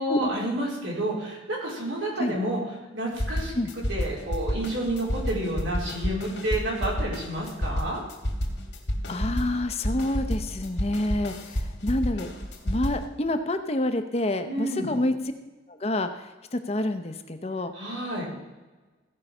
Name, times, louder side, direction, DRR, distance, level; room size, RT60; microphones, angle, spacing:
voice 1, 0.0-2.6 2.9-8.0 14.5-14.9 17.7-18.3, right 1 dB, 90° right, -4 dB, 4.1 m, -30 dB
sound 1, 3.2-13.0, equal, 70° left, 1.9 m, -30 dB
voice 2, 9.1-12.3 12.6-15.1 15.7-17.7, left 1 dB, 35° left, 8 dB, 0.7 m, -28 dB
16.0 x 5.5 x 5.5 m, 1.2 s
head